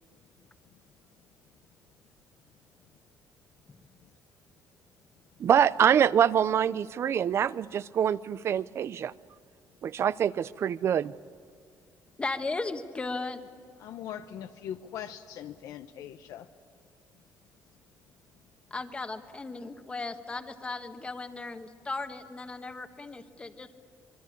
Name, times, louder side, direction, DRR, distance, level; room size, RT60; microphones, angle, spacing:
voice 1, 5.4-9.1 9.8-11.1, right 9 dB, 45° right, 18 dB, 0.6 m, -25 dB
voice 2, 12.2-13.5 18.7-23.8, left 3 dB, 20° left, 7 dB, 1.4 m, -36 dB
voice 3, 13.8-16.5, left 10 dB, 70° left, 7 dB, 0.9 m, -41 dB
25.5 x 23.5 x 8.6 m, 2.1 s
cardioid pair, 140°, 6 cm